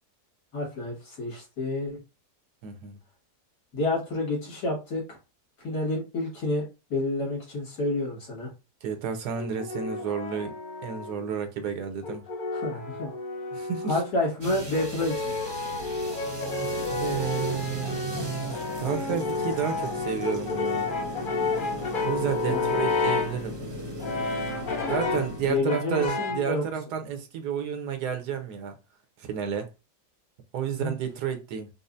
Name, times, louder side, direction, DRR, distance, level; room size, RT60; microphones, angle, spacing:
voice 1, 0.5-2.0 3.7-5.2 5.6-8.5 12.5-13.1 13.9-15.4 22.5-22.7 25.5-26.6 30.8-30.9, left 2 dB, 80° left, 2.4 m, -29 dB
voice 2, 2.6-3.0 8.8-10.5 10.8-12.2 13.5-14.0 16.6-20.9 22.0-23.6 24.9-28.7 29.2-29.7 30.5-31.7, right 8 dB, 85° right, 1.3 m, -31 dB
Brass instrument, 9.3-11.3 12.0-14.1 14.7-23.4 24.0-25.4 25.7-26.5, left 3 dB, 50° left, 0.6 m, -31 dB
sound 1, 14.4-25.6, equal, 25° right, 0.6 m, -38 dB
5.3 x 2.0 x 2.5 m
omnidirectional pair, 1.7 m